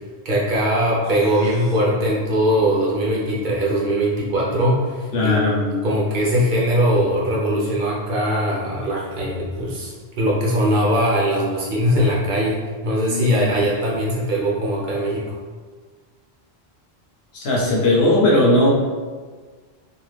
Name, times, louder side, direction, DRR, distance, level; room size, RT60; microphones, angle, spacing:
voice 1, 0.2-15.4, equal, 55° right, -5 dB, 0.7 m, -21 dB
voice 2, 5.1-5.6 13.1-13.5 17.3-18.7, left 1 dB, 80° left, -4 dB, 1.0 m, -18 dB
2.7 x 2.3 x 3.2 m, 1.5 s
omnidirectional pair, 1.1 m